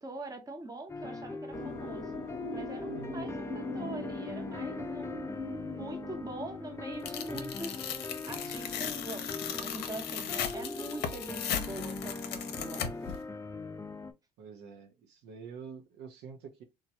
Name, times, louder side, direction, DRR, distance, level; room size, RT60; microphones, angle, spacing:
voice 1, 0.0-2.1 2.5-7.8 8.3-12.9, right 2 dB, 20° right, 0.9 m, -43 dB
sound 1, 0.9-14.1, left 3 dB, 15° left, 0.5 m, -41 dB
sound 2, 1.5-10.9, left 2 dB, 40° left, 0.9 m, -42 dB
voice 2, 2.9-3.3 14.4-16.6, right 5 dB, 60° right, 0.7 m, -47 dB
Tearing, 7.1-13.2, left 8 dB, 60° left, 0.6 m, -37 dB
3.0 x 2.3 x 2.8 m
hypercardioid pair, 75°, 19 cm